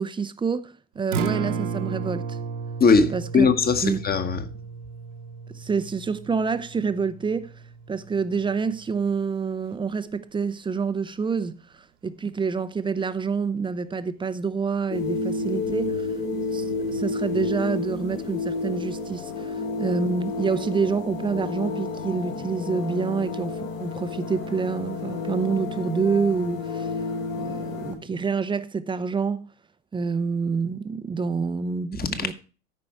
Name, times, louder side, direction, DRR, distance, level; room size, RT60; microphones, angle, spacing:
voice 1, 0.0-2.4 3.1-3.5 3.8-4.0 5.5-7.5 7.9-16.2 16.5-26.9 27.4-29.5 29.9-32.3, right 5 dB, 10° right, 0.6 m, -27 dB
Acoustic guitar, 1.0-9.2, right 5 dB, 65° right, 1.4 m, -34 dB
voice 2, 2.8-4.4 32.0-32.3, left 5 dB, 25° left, 1.2 m, -20 dB
sound 1, 14.9-27.9, left 3 dB, 75° left, 3.4 m, -30 dB
13.5 x 5.2 x 4.5 m
figure-of-eight pair, 80°, 40 cm